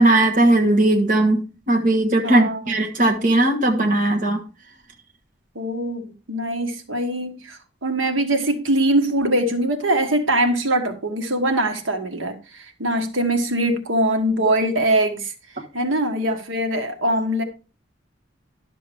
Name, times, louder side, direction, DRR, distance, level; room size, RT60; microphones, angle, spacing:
voice 1, 0.0-1.4 1.7-4.4, right 2 dB, 40° right, 1.2 m, -18 dB
voice 2, 2.2-2.6 5.5-15.3 15.7-17.4, right 1 dB, 75° right, 1.4 m, -22 dB
11.5 x 6.8 x 3.5 m
head